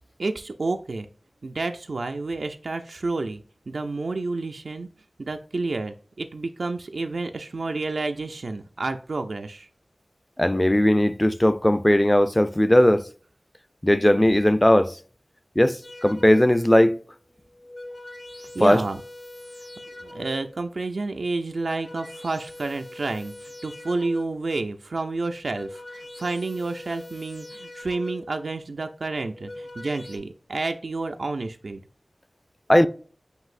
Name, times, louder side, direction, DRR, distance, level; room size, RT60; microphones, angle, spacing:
voice 1, 0.2-1.1 1.4-4.9 5.2-9.7 18.5-19.0 20.0-31.8, right 3 dB, 85° right, 0.3 m, -30 dB
voice 2, 10.4-13.1 13.8-15.0 15.6-17.0 18.6-18.8 32.7-32.9, left 1 dB, 20° left, 0.4 m, -18 dB
sound 1, 15.8-16.7 17.4-20.6 21.4-24.5 25.2-28.4 29.2-30.2, left 1 dB, 45° left, 0.9 m, -42 dB
7.8 x 2.7 x 2.4 m
wide cardioid pair, 50°, 0 cm